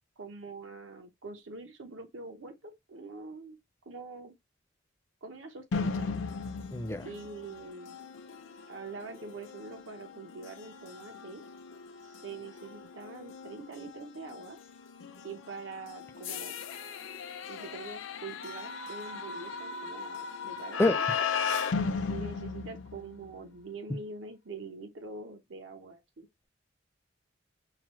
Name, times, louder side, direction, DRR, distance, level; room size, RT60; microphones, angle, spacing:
voice 1, 0.2-3.6 3.8-4.3 5.2-6.2 7.0-8.0 8.7-11.4 12.0-14.6 15.2-16.6 17.5-21.1 22.1-26.3, right 3 dB, 75° right, 0.8 m, -44 dB
sound 1, 5.7-23.4, left 5 dB, 80° left, 0.5 m, -37 dB
voice 2, 6.7-7.1 20.8-21.2 21.5-21.6, left 2 dB, 15° left, 0.4 m, -28 dB
5.8 x 2.1 x 3.0 m
head